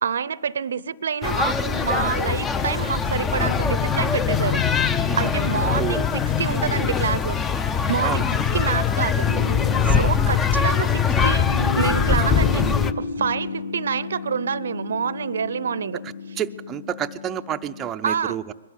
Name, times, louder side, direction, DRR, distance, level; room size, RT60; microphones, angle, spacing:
voice 1, 0.0-7.4 7.9-8.3 8.5-9.3 9.8-11.5 11.7-12.6 13.0-16.0 18.0-18.4, right 7 dB, 75° right, 21 dB, 0.7 m, -27 dB
sound 1, 1.2-12.9, left 6 dB, 15° left, 0.8 m, -22 dB
voice 2, 5.1-5.4 5.7-6.1 8.0-8.2 9.8-10.1 16.4-18.5, right 10 dB, 20° right, 7 dB, 0.6 m, -29 dB
sound 2, 9.2-17.9, left 2 dB, 90° left, 1.4 m, -34 dB
22.0 x 12.5 x 9.6 m, 1.2 s
hypercardioid pair, 135°, 0 cm